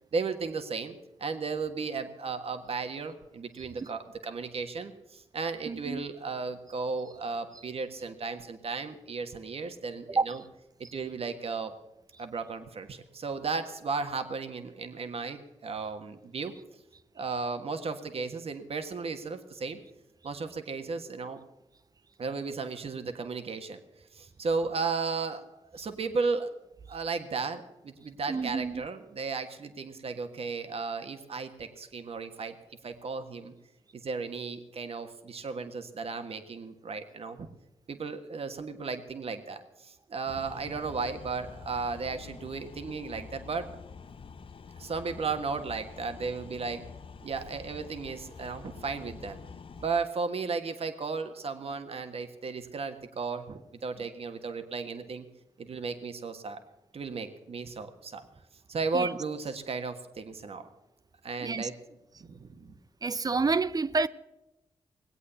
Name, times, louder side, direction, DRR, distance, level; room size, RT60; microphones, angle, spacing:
voice 1, 0.1-10.4 10.8-11.7 12.2-16.5 17.1-19.8 20.2-21.4 22.2-23.8 24.1-26.5 26.9-32.6 32.8-33.5 33.9-37.5 37.9-43.7 44.8-46.8 47.2-49.4 49.8-55.3 55.6-56.6 56.9-58.2 58.7-60.7 61.2-61.7 62.2-62.7, right 4 dB, 55° right, 1.5 m, -35 dB
voice 2, 5.7-6.0 10.1-10.4 28.3-28.8 58.9-59.1 61.4-61.7 63.0-64.1, right 4 dB, 35° right, 0.6 m, -29 dB
sound 1, 40.3-49.9, left 5 dB, 50° left, 0.7 m, -47 dB
19.5 x 8.4 x 6.9 m
cardioid pair, 60°, 12 cm